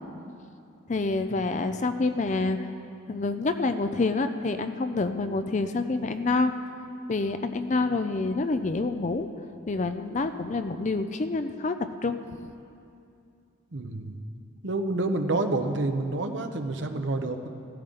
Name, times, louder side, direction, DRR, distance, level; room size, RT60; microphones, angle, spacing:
voice 1, 0.9-2.7 3.1-6.5 7.1-9.3 9.7-12.2, left 3 dB, 35° left, 9 dB, 0.4 m, -27 dB
voice 2, 13.7-14.2 14.6-17.5, right 2 dB, 60° right, 6 dB, 0.8 m, -28 dB
15.5 x 13.5 x 3.8 m, 2.6 s
head